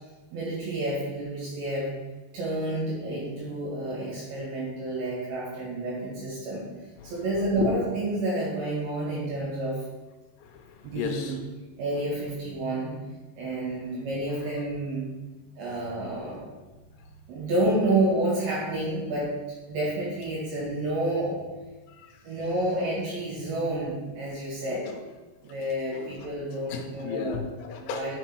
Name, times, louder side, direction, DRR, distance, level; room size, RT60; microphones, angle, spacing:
voice 1, 0.3-1.9 2.3-6.7 7.0-9.8 10.8-11.4 11.8-12.9 13.4-15.1 15.6-16.5 17.3-19.3 19.7-21.4 22.2-24.9 25.4-27.4 27.8-28.1, right 1 dB, 65° right, -7 dB, 4.2 m, -29 dB
voice 2, 10.4-11.4 14.4-14.5 21.9-22.2 24.7-25.0 25.9-26.3 26.7-28.1, left 7 dB, 80° left, 5 dB, 3.3 m, -35 dB
7.1 x 6.8 x 6.2 m, 1.2 s
omnidirectional pair, 5.8 m